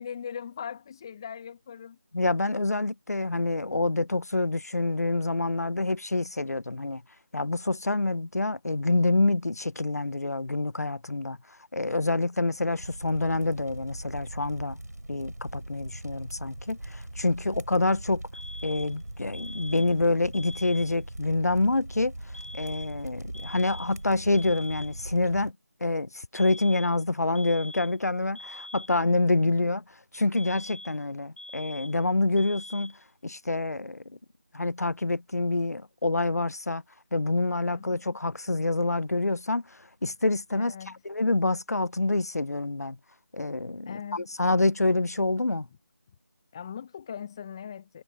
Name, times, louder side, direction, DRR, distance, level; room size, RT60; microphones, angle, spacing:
voice 1, 0.0-2.0 37.7-38.2 40.6-41.0 43.9-44.3 46.5-48.0, left 8 dB, 15° left, 0.8 m, -40 dB
voice 2, 2.1-7.0 7.3-11.4 11.7-14.8 15.1-18.2 18.6-22.1 22.5-25.5 25.8-29.8 30.1-32.9 33.2-34.0 34.5-36.8 37.1-43.0 43.3-45.7, left 2 dB, 70° left, 0.8 m, -27 dB
sound 1, 12.8-25.5, right 1 dB, 85° right, 3.5 m, -40 dB
sound 2, 18.3-19.0 19.3-20.0 20.3-21.0 22.3-23.0 23.3-24.0 24.3-25.0 26.4-27.0 27.4-28.0 28.4-29.0 30.4-31.0 31.4-32.0 32.4-33.0, left 1 dB, 50° left, 4.7 m, -44 dB
figure-of-eight pair, 165°, 9 cm